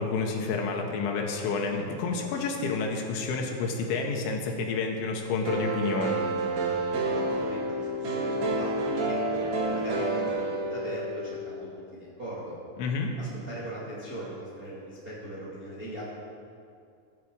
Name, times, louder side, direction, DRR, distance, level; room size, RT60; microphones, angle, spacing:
voice 1, 0.0-6.2 12.8-13.2, left 4 dB, 80° left, 2 dB, 3.8 m, -29 dB
sound 1, 5.5-11.3, right 2 dB, 65° right, 3.8 m, -29 dB
voice 2, 7.0-12.6 13.2-16.0, right 1 dB, 25° right, -8 dB, 2.6 m, -39 dB
23.5 x 9.3 x 5.0 m, 2.4 s
omnidirectional pair, 5.3 m